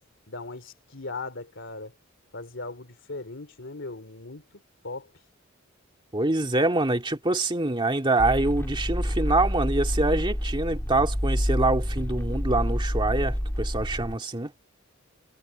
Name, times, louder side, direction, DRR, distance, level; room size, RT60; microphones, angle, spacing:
voice 1, 0.3-1.9 2.3-5.1, left 3 dB, 60° left, 3.1 m, -38 dB
voice 2, 6.1-14.5, right 2 dB, 25° right, 2.1 m, -25 dB
sound 1, 8.2-14.1, equal, 10° left, 2.3 m, -28 dB
head